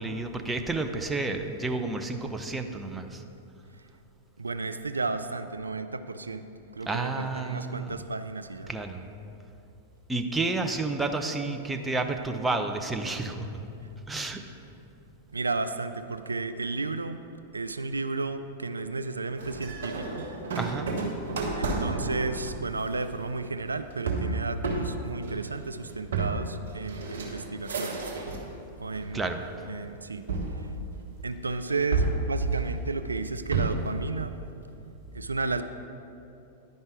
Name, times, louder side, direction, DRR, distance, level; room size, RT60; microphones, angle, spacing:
voice 1, 0.0-3.2 6.9-8.0 8.7-9.0 10.1-13.5 14.1-14.4 20.6-20.9 29.1-29.4, right 3 dB, 10° right, 5 dB, 0.6 m, -30 dB
voice 2, 4.4-6.5 6.8-8.7 15.3-17.2 17.5-20.3 21.6-28.0 28.8-29.2 29.6-30.2 30.5-30.7 31.2-34.4 35.1-35.6, right 3 dB, 90° right, 10 dB, 0.3 m, -33 dB
sound 1, 19.4-28.5 28.9-29.6 30.3-31.4 31.9-34.0, right 3 dB, 70° right, 1.3 m, -31 dB
10.5 x 5.4 x 4.8 m, 2.8 s
hypercardioid pair, 100°, 0 cm